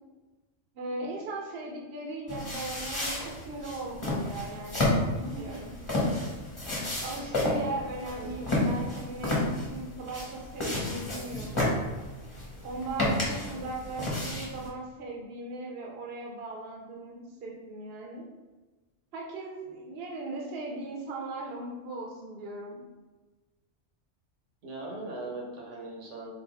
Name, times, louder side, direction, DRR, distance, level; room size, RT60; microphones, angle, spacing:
voice 1, 0.7-4.8 5.1-6.2 7.0-11.7 12.6-18.3 19.1-22.8, right 2 dB, 60° right, -1 dB, 0.8 m, -38 dB
sound 1, 2.3-14.7, left 1 dB, 25° left, 1.0 m, -31 dB
voice 2, 8.1-8.5 13.2-13.7 24.6-26.3, right 2 dB, 80° right, -2 dB, 1.2 m, -40 dB
4.1 x 2.6 x 3.4 m, 1.2 s
omnidirectional pair, 1.2 m